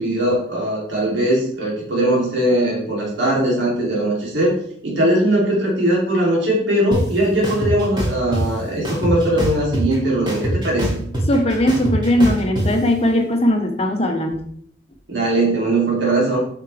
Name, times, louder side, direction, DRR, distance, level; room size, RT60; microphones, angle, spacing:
voice 1, 0.0-4.5 4.8-11.0 15.1-16.4, right 1 dB, 75° right, -4 dB, 3.2 m, -20 dB
sound 1, 6.9-7.0 7.4-8.4 8.8-9.9 10.3-12.7, right 1 dB, 25° right, 2.6 m, -23 dB
voice 2, 11.3-14.4, left 1 dB, 35° left, 3 dB, 1.3 m, -18 dB
8.8 x 6.6 x 3.5 m, 0.65 s
head